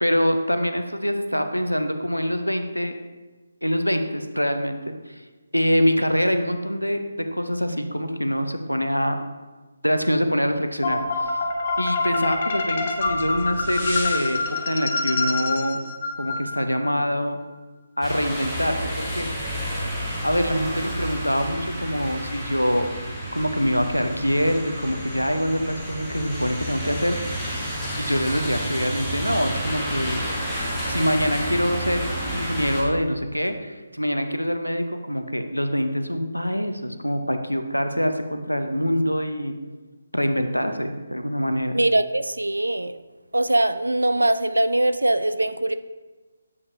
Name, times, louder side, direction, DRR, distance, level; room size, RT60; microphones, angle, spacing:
voice 1, 0.0-3.0 3.6-5.1 5.5-7.0 7.3-9.2 9.8-11.4 11.8-14.4 14.7-15.8 16.2-17.4 18.0-19.3 20.2-22.9 23.3-27.2 28.0-30.3 30.9-39.6 40.1-41.8, equal, 90° left, 8 dB, 0.6 m, -24 dB
sound 1, 10.8-16.9, left 3 dB, 40° left, 0.8 m, -26 dB
sound 2, 18.0-32.8, equal, ahead, 1.3 m, -30 dB
voice 2, 41.7-43.0 43.3-45.7, right 1 dB, 75° right, 12 dB, 0.3 m, -22 dB
8.1 x 5.4 x 2.6 m, 1.3 s
figure-of-eight pair, 145°, 0 cm